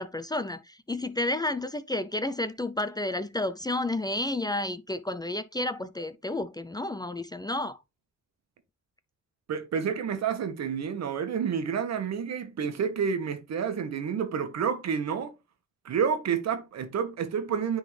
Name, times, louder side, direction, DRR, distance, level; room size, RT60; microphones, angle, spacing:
voice 1, 0.0-7.8, left 2 dB, 15° left, 0.5 m, -31 dB
voice 2, 9.5-15.3 15.8-17.8, right 7 dB, 60° right, 1.4 m, -29 dB
9.8 x 4.0 x 3.3 m
cardioid pair, 90°, 30 cm